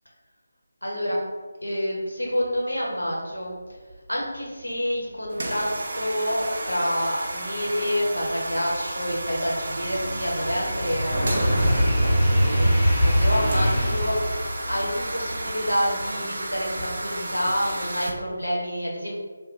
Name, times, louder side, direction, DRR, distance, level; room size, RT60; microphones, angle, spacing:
voice 1, 0.8-1.2 1.6-3.8 4.1-19.2, equal, 85° left, -3 dB, 1.1 m, -28 dB
sound 1, 5.3-18.1, right 1 dB, 45° right, 0.5 m, -32 dB
sound 2, 7.6-7.7 8.1-17.2 17.6-18.0, equal, 5° left, 0.6 m, -24 dB
3.2 x 2.2 x 3.7 m, 1.4 s
figure-of-eight pair, 155°, 0 cm